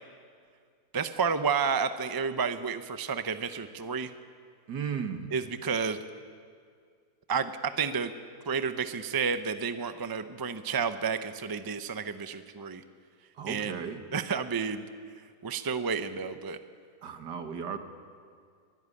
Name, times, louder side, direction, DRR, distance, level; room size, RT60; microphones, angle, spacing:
voice 1, 0.9-4.1 5.3-6.0 7.3-8.1 8.5-12.8 13.5-13.8 14.1-14.8 15.4-16.6, right 6 dB, 25° right, 10 dB, 0.5 m, -31 dB
voice 2, 4.7-5.3 13.4-14.0 17.0-17.8, right 7 dB, 80° right, 7 dB, 2.1 m, -35 dB
24.0 x 14.5 x 9.9 m, 2.2 s
omnidirectional pair, 1.8 m